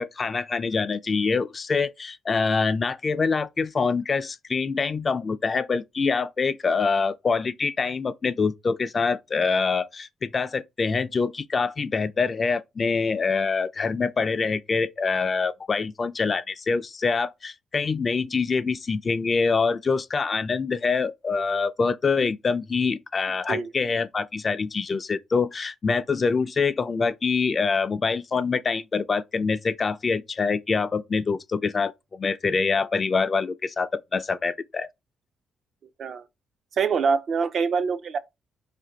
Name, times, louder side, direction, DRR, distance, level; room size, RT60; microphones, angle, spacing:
voice 1, 0.0-34.9, left 4 dB, 35° left, 0.3 m, -25 dB
voice 2, 36.7-38.2, right 5 dB, 55° right, 0.4 m, -25 dB
2.5 x 2.5 x 3.8 m
cardioid pair, 90°, 0 cm